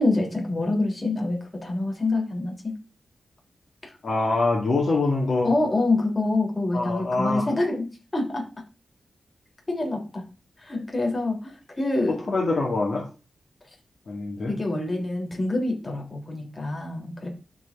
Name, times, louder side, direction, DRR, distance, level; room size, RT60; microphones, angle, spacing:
voice 1, 0.0-2.7 3.8-3.9 5.4-8.4 9.7-10.2 10.6-12.2 14.5-17.3, left 2 dB, 30° left, 0 dB, 3.1 m, -26 dB
voice 2, 4.0-5.5 6.7-7.5 12.1-13.0 14.1-14.5, left 3 dB, 55° left, -1 dB, 1.9 m, -24 dB
12.0 x 4.0 x 3.6 m, 0.34 s
wide cardioid pair, 105°, 0 cm